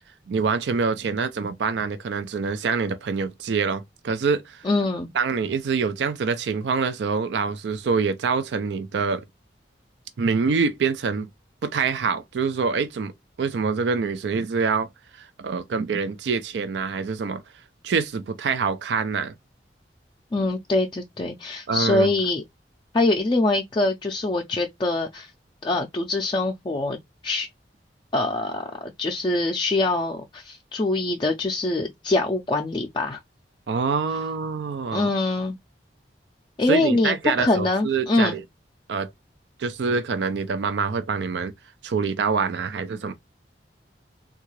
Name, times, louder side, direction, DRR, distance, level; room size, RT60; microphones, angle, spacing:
voice 1, 0.3-4.6 5.1-9.2 10.2-11.3 11.6-13.1 13.4-17.4 17.8-19.3 21.7-22.1 33.7-35.1 36.7-38.4 38.9-39.1 39.6-41.5 41.8-43.1, right 5 dB, 80° right, 0.4 m, -25 dB
voice 2, 4.6-5.1 20.3-22.4 22.9-25.3 25.6-27.0 27.2-27.5 28.1-33.2 34.9-35.6 36.6-38.4, left 2 dB, 25° left, 0.4 m, -24 dB
3.6 x 2.3 x 3.0 m
head